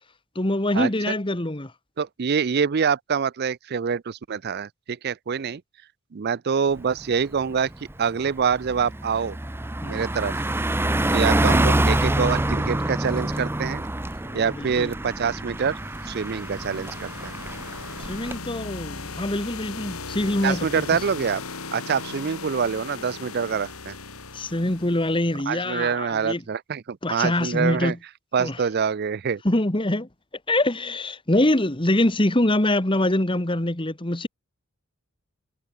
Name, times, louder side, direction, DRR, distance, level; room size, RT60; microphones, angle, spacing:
voice 1, 0.3-1.7 9.8-10.0 10.8-11.0 14.2-14.9 18.0-20.8 24.3-26.4 27.0-28.0 28.4-28.6 29.4-30.1 30.5-34.3, left 1 dB, 25° left, 1.5 m, -24 dB
voice 2, 2.0-5.6 6.1-7.7 8.0-9.4 9.8-10.4 11.1-13.8 14.3-15.8 16.1-17.3 20.4-21.4 21.7-23.9 25.5-27.9 28.3-29.4, right 6 dB, 45° right, 0.4 m, -25 dB
Car passing by, 6.8-7.0 7.4-18.4, right 1 dB, 10° right, 0.7 m, -26 dB
sound 1, 15.6-25.4, left 4 dB, 80° left, 4.8 m, -38 dB
head